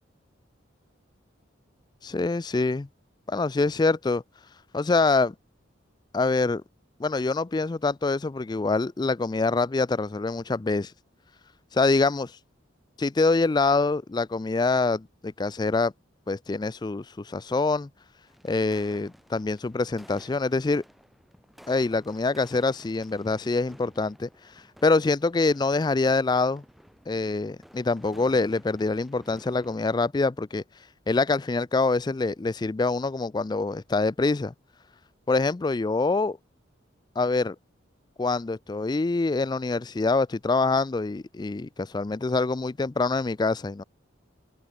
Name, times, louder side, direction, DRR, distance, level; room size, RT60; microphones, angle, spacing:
voice 1, 2.0-2.9 3.3-4.2 4.7-5.3 6.1-6.6 7.0-10.9 11.7-12.3 13.0-15.9 16.3-17.9 18.4-20.8 21.7-24.3 24.8-26.6 27.1-30.6 31.1-34.5 35.3-36.4 37.2-37.6 38.2-43.8, left 3 dB, 20° left, 0.4 m, -25 dB
sound 1, 18.3-29.9, equal, ahead, 2.0 m, -54 dB
open air
head